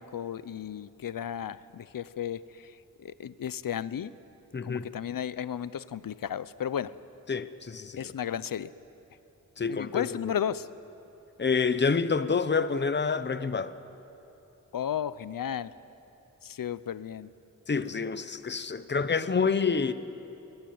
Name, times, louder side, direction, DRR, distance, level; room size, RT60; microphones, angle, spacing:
voice 1, 0.0-4.1 4.6-6.9 8.0-8.7 9.7-10.7 14.7-15.7 16.4-17.3, left 9 dB, 85° left, 0.7 m, -34 dB
voice 2, 4.5-4.9 7.3-8.1 9.6-10.3 11.4-13.7 17.7-19.9, left 5 dB, 35° left, 0.9 m, -28 dB
22.5 x 22.5 x 9.5 m
wide cardioid pair, 105°, 33 cm